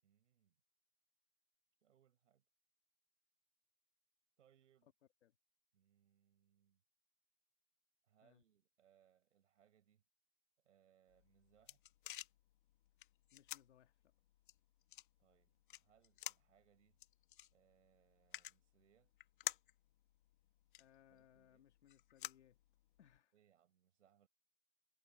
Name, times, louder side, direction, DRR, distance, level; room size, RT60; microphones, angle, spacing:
voice 1, 0.0-0.6 1.8-2.4 4.4-4.9 5.7-6.8 8.0-10.0 10.6-11.8 15.2-17.0 17.5-19.1 21.1-21.7 23.3-24.3, right 9 dB, 80° right, 6.1 m, -74 dB
sound 1, 11.1-23.2, left 13 dB, 45° left, 1.1 m, -53 dB
voice 2, 13.3-13.9 20.8-22.6 23.0-23.3, left 10 dB, 70° left, 2.4 m, -68 dB
hypercardioid pair, 180°, 36 cm